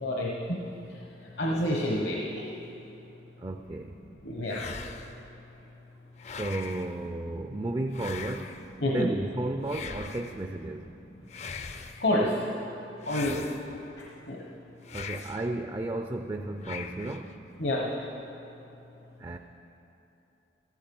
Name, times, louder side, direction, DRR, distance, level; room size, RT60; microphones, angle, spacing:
voice 1, 0.0-0.6 1.4-2.4 4.2-4.6 8.8-9.1 12.0-12.3 13.1-13.4 14.3-14.4 17.6-17.9, left 1 dB, 70° left, -2 dB, 1.1 m, -28 dB
voice 2, 3.4-4.0 6.3-8.6 8.9-10.9 13.2-13.4 14.9-17.4 19.2-19.4, right 2 dB, 25° right, 6 dB, 0.4 m, -33 dB
sound 1, 4.5-5.3 6.2-7.0 7.9-8.7 9.7-10.4 11.3-12.1 13.0-13.9 14.8-15.5 16.6-17.3, left 5 dB, 40° left, 0.5 m, -41 dB
14.0 x 13.0 x 5.4 m, 2.9 s
head